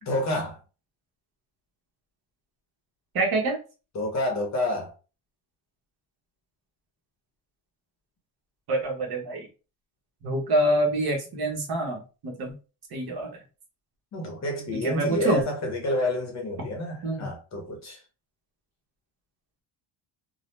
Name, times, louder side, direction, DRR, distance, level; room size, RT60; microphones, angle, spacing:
voice 1, 0.0-0.6 3.9-4.9 14.1-18.0, left 1 dB, 35° left, 0.7 m, -29 dB
voice 2, 3.1-3.6 8.7-9.5 10.2-12.5 12.9-13.4 14.7-15.4 17.0-17.3, right 1 dB, 50° right, 1.0 m, -26 dB
2.7 x 2.0 x 3.2 m
cardioid pair, 170°, 49 cm